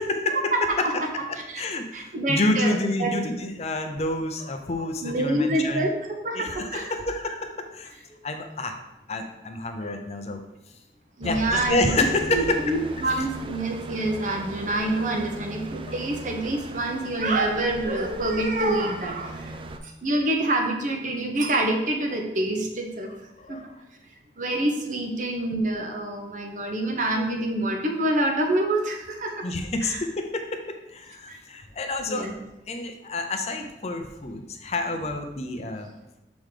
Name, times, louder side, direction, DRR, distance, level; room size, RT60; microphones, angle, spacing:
voice 1, 0.0-5.9 6.3-7.9 8.2-8.7 9.1-10.8 11.2-13.3 15.9-16.0 19.5-19.6 23.0-23.8 29.4-32.3 32.7-35.9, left 2 dB, 35° left, 5 dB, 0.5 m, -29 dB
voice 2, 0.5-1.1 1.5-1.6 1.9-2.7 3.0-3.2 5.0-6.0 6.2-6.8 11.2-11.9 12.3-19.6 19.8-23.1 23.5-23.7 24.4-29.5 29.8-30.0 31.3-31.4 32.0-32.3, right 1 dB, 45° right, 2 dB, 0.9 m, -26 dB
sound 1, 11.2-19.8, right 2 dB, 30° right, 0.4 m, -38 dB
6.1 x 3.7 x 4.9 m, 0.93 s
head